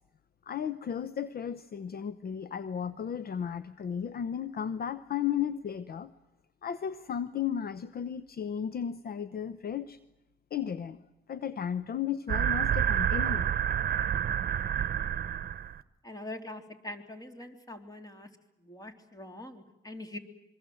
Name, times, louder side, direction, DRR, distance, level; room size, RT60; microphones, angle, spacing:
voice 1, 0.5-6.1 6.6-10.0 10.5-11.0 11.3-13.5, left 8 dB, 50° left, 13 dB, 0.9 m, -34 dB
sound 1, 12.3-15.8, right 9 dB, 50° right, 1.0 m, -28 dB
voice 2, 16.0-18.3 18.6-20.2, left 1 dB, 20° left, 6 dB, 3.3 m, -43 dB
26.0 x 23.5 x 7.9 m, 0.93 s
cardioid pair, 90°, 20 cm